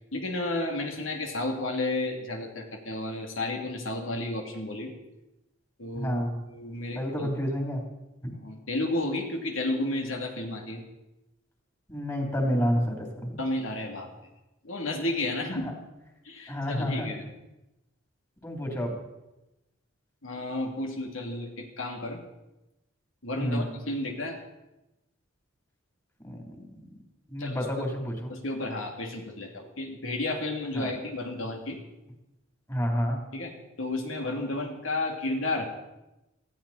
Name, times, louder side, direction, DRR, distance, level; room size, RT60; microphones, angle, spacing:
voice 1, 0.1-4.9 5.8-7.3 8.4-10.8 13.4-14.1 14.6-15.7 16.2-17.3 20.2-22.2 23.2-24.4 27.4-27.6 27.8-28.0 28.3-31.8 33.3-33.5 33.8-35.7, left 2 dB, 75° left, 2 dB, 2.8 m, -32 dB
voice 2, 5.9-6.3 6.9-7.8 11.9-13.4 15.6-15.7 16.5-17.1 18.4-18.9 23.4-23.7 26.2-26.6 27.3-28.3 30.7-30.9 32.7-33.2, equal, 20° left, 1 dB, 3.3 m, -29 dB
19.0 x 14.5 x 4.3 m, 0.97 s
head